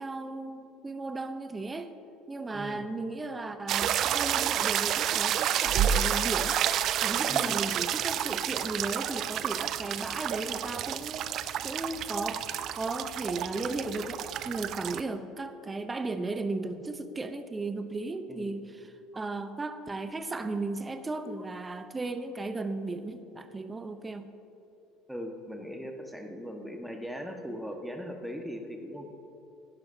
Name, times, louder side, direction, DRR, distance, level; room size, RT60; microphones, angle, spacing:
voice 1, 0.0-1.9 2.3-6.6 7.0-11.2 11.6-12.4 12.7-24.3, right 3 dB, 20° right, 10 dB, 0.9 m, -35 dB
voice 2, 2.5-2.8 7.3-7.7 18.3-18.6 25.1-29.1, equal, 5° right, 3 dB, 1.6 m, -39 dB
sound 1, 3.7-15.0, right 10 dB, 50° right, 0.4 m, -29 dB
17.0 x 10.5 x 2.9 m, 3.0 s
hypercardioid pair, 65°, 0 cm